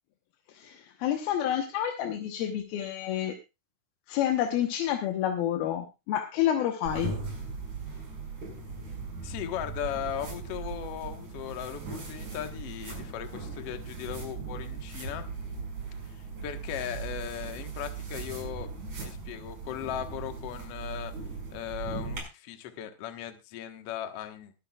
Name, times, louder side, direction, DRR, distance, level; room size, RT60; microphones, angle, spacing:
voice 1, 0.5-3.4 4.1-7.1, left 11 dB, 80° left, 4 dB, 3.0 m, -29 dB
sound 1, 6.9-22.2, right 4 dB, 50° right, 6.7 m, -38 dB
voice 2, 9.2-15.2 16.1-21.1 21.5-24.5, left 10 dB, 55° left, 7 dB, 1.8 m, -38 dB
22.0 x 10.0 x 2.3 m, 0.27 s
omnidirectional pair, 4.2 m